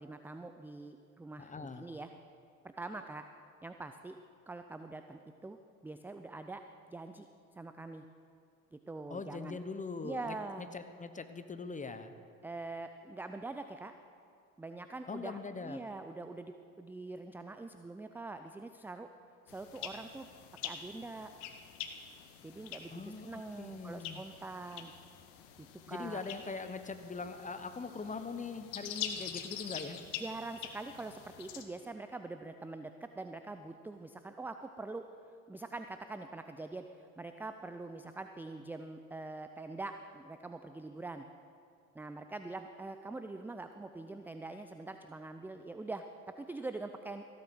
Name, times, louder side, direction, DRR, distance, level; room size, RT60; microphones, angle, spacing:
voice 1, 0.0-2.1 2.6-3.2 3.6-4.2 4.5-6.6 6.9-7.3 7.5-8.0 8.7-9.6 10.0-10.7 12.4-13.9 14.6-19.1 19.5-20.3 20.6-21.3 22.4-24.9 25.6-26.2 30.2-35.0 35.5-41.3 41.9-47.3, right 3 dB, 5° right, 8 dB, 0.4 m, -44 dB
voice 2, 1.4-1.9 9.1-12.1 15.1-15.8 22.9-24.2 25.9-30.0, left 4 dB, 15° left, 10 dB, 1.0 m, -42 dB
sound 1, 19.5-31.6, left 9 dB, 65° left, 1.3 m, -45 dB
15.5 x 8.7 x 6.2 m, 2.4 s
hypercardioid pair, 65°, 44 cm